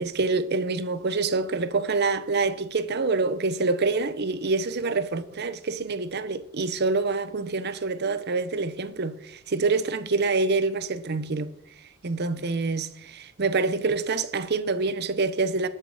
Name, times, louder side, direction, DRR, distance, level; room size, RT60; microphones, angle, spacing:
voice 1, 0.0-11.5 12.0-15.7, right 3 dB, 50° right, 0.8 m, -26 dB
19.5 x 6.8 x 4.9 m
head